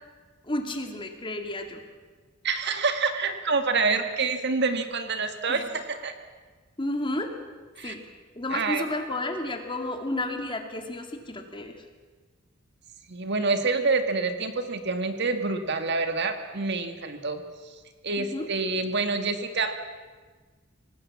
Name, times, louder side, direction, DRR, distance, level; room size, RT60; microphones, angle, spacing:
voice 1, 0.4-1.8 5.5-5.6 6.8-7.3 7.8-8.1 8.3-11.8 18.2-18.5, left 1 dB, 25° left, 5 dB, 2.5 m, -32 dB
voice 2, 2.4-6.1 7.8-7.9 8.5-8.8 13.1-17.4 18.0-19.8, right 4 dB, 60° right, 7 dB, 2.0 m, -27 dB
25.0 x 19.0 x 7.4 m, 1.4 s
head